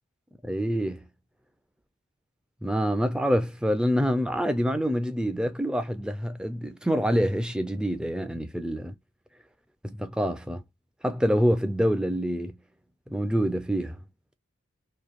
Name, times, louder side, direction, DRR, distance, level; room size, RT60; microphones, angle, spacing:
voice 1, 0.4-1.0 2.6-8.9 9.8-10.6 11.0-12.6 13.1-14.0, equal, 5° right, 0.3 m, -26 dB
2.9 x 2.5 x 2.4 m
head